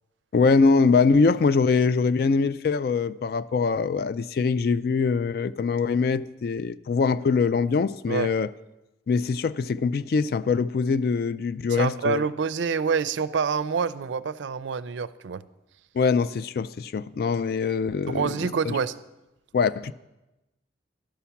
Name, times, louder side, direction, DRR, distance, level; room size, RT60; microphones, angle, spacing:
voice 1, 0.3-8.5 9.1-12.3 15.9-18.3 18.7-18.8 19.5-19.9, left 4 dB, 55° left, 0.3 m, -23 dB
voice 2, 11.8-15.4 18.1-19.0, right 6 dB, 80° right, 0.4 m, -27 dB
11.5 x 5.7 x 7.1 m
head